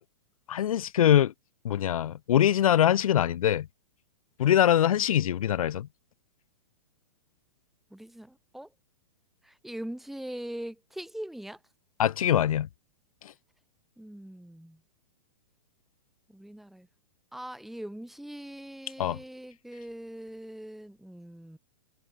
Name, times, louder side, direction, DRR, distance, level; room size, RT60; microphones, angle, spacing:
voice 1, 0.5-1.3 1.6-3.7 4.4-5.9 12.0-12.7 19.0-19.2, left 10 dB, 85° left, 0.7 m, -23 dB
voice 2, 7.9-8.7 9.4-11.6 14.0-14.8 16.3-16.9 17.3-21.6, right 1 dB, ahead, 1.3 m, -41 dB
hypercardioid pair, 155°, 17 cm